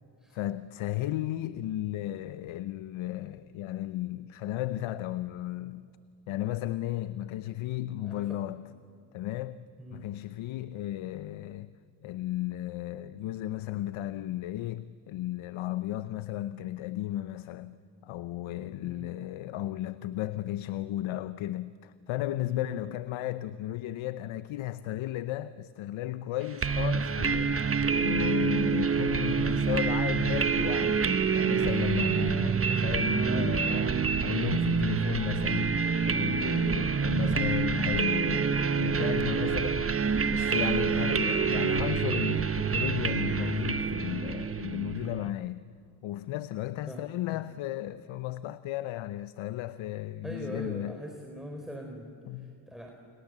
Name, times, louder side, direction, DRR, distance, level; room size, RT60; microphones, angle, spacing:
voice 1, 0.3-5.9 6.3-8.6 9.1-11.7 12.0-17.8 18.0-35.8 36.0-40.0 40.3-45.6 46.0-51.0 52.3-52.6, left 14 dB, 75° left, 0.8 m, -34 dB
voice 2, 8.0-8.4 9.8-10.1 18.8-19.1 22.4-23.0 32.3-32.7 46.9-47.1 50.2-52.1 52.4-52.9, equal, ahead, 3.9 m, -42 dB
sound 1, 26.6-45.3, right 6 dB, 30° right, 1.1 m, -27 dB
29.0 x 26.0 x 7.7 m
supercardioid pair, 65°, 48 cm